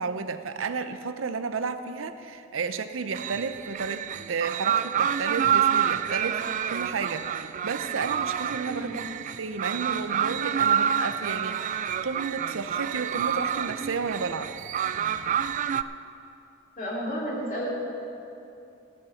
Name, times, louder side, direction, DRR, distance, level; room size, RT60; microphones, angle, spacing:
voice 1, 0.0-6.4 6.7-8.9 9.4-14.5, right 5 dB, 80° right, 10 dB, 0.6 m, -32 dB
sound 1, 3.1-15.8, right 8 dB, 40° right, 0.3 m, -28 dB
voice 2, 8.6-9.0 16.8-17.7, equal, 45° left, -4 dB, 3.0 m, -32 dB
14.5 x 7.1 x 7.1 m, 2.7 s
head